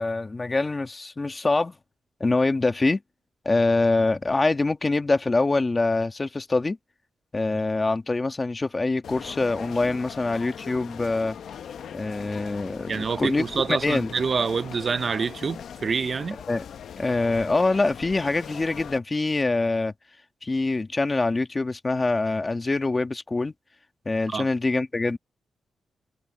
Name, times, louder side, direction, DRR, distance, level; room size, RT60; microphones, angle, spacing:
voice 1, 0.0-1.8 2.2-3.0 3.4-6.8 7.3-11.4 11.9-14.1 16.5-16.6 17.0-19.9 20.4-23.5 24.0-25.2, left 3 dB, 20° left, 1.3 m, -24 dB
sound 1, 9.0-19.0, left 8 dB, 70° left, 0.7 m, -40 dB
voice 2, 12.9-16.4 24.3-24.5, right 5 dB, 40° right, 0.5 m, -27 dB
wide cardioid pair, 135°, 0 cm